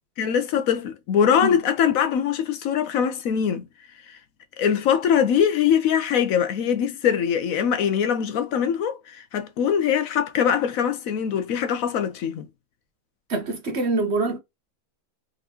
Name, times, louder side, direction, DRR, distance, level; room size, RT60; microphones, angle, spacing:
voice 1, 0.2-3.7 4.1-4.2 4.6-12.5, left 8 dB, 70° left, 1.0 m, -22 dB
voice 2, 13.3-14.4, right 3 dB, 50° right, 1.1 m, -24 dB
3.6 x 3.6 x 2.8 m
omnidirectional pair, 1.6 m